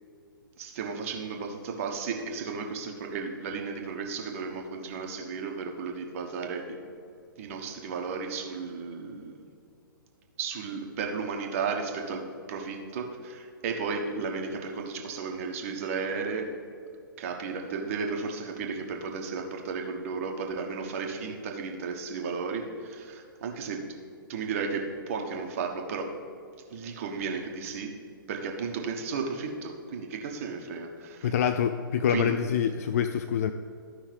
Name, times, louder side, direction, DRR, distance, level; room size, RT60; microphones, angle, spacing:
voice 1, 0.6-6.8 7.4-9.3 10.4-16.5 17.2-24.0 24.3-26.1 26.7-28.0 28.3-31.3 32.1-32.4, right 5 dB, 40° right, 2 dB, 1.1 m, -34 dB
voice 2, 31.2-33.5, left 8 dB, 45° left, 9 dB, 0.3 m, -26 dB
14.0 x 5.4 x 3.4 m, 2.4 s
figure-of-eight pair, 120°, 12 cm